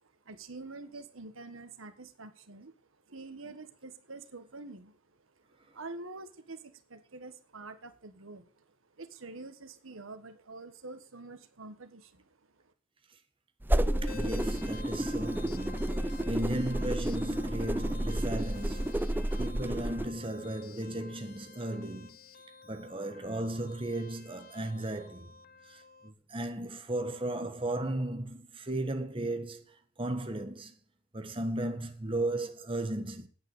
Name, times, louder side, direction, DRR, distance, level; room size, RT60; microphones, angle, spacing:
voice 1, 0.0-2.7 3.1-5.0 5.7-8.6 9.0-12.3, right 3 dB, 85° right, 1.4 m, -46 dB
sound 1, 13.6-20.1, right 1 dB, 10° right, 0.5 m, -31 dB
sound 2, 13.8-26.1, left 5 dB, 45° left, 0.9 m, -51 dB
voice 2, 14.0-19.1 19.4-22.2 22.7-25.3 25.7-29.6 30.0-30.7 31.1-33.3, right 1 dB, 25° right, 1.4 m, -35 dB
9.6 x 8.8 x 8.0 m
head